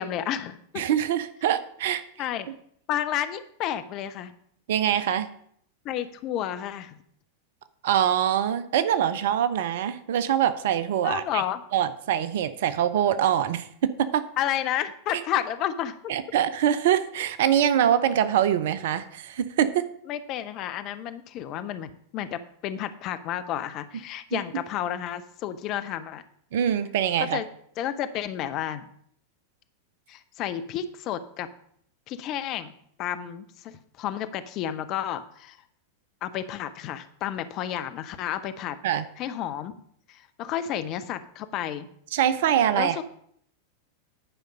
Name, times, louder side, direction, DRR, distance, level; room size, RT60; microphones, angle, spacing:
voice 1, 0.0-0.8 2.2-2.5 2.9-4.3 5.8-7.0 11.0-11.6 14.4-16.0 20.1-26.2 27.2-27.5 27.8-28.9 30.1-31.5 32.1-32.7 33.0-35.6 36.2-38.8 39.2-39.7 40.1-41.9 42.7-43.0, left 11 dB, 40° left, 11 dB, 0.7 m, -31 dB
voice 2, 0.8-2.0 4.7-5.3 7.8-11.4 11.7-14.2 16.1-19.8 24.3-24.4 26.5-27.4 38.8-39.0 42.1-43.0, right 10 dB, 55° right, 13 dB, 0.6 m, -24 dB
10.0 x 5.2 x 5.5 m, 0.67 s
figure-of-eight pair, 90°, 0 cm